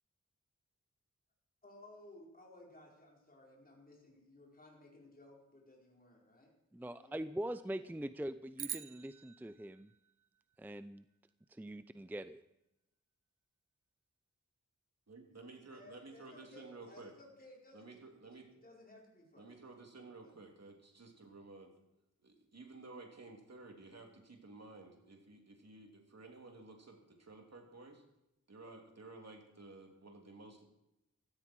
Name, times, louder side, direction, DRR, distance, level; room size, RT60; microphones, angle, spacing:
voice 1, 1.6-7.2 7.5-7.9 15.7-19.7 20.2-20.3, left 1 dB, 30° left, -2 dB, 4.6 m, -59 dB
voice 2, 6.7-9.9 10.6-11.0 11.5-12.4, right 1 dB, 5° right, 13 dB, 0.5 m, -43 dB
sound 1, 8.6-11.0, right 8 dB, 90° right, 0.6 m, -47 dB
voice 3, 15.1-17.1 17.7-18.5 19.4-21.7 22.2-28.0 28.5-30.6, right 3 dB, 60° right, 1 dB, 3.4 m, -54 dB
16.5 x 13.5 x 4.7 m, 0.87 s
wide cardioid pair, 90°, 30 cm